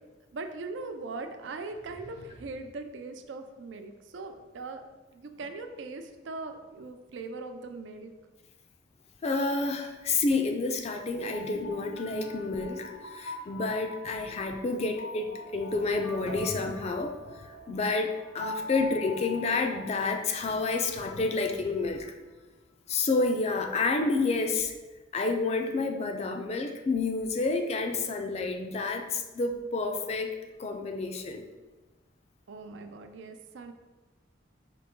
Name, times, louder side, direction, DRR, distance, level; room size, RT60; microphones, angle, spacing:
voice 1, 0.3-8.1 18.5-18.7 32.5-33.7, right 3 dB, 75° right, 7 dB, 0.4 m, -40 dB
sound 1, 1.5-2.8, equal, 60° right, 0.8 m, -52 dB
voice 2, 9.2-22.1 22.9-24.7 25.1-30.3 30.6-31.4, left 3 dB, 35° left, 4 dB, 0.4 m, -29 dB
sound 2, 11.1-22.2, left 1 dB, 85° left, 0.7 m, -43 dB
4.7 x 2.9 x 3.6 m, 1.2 s
head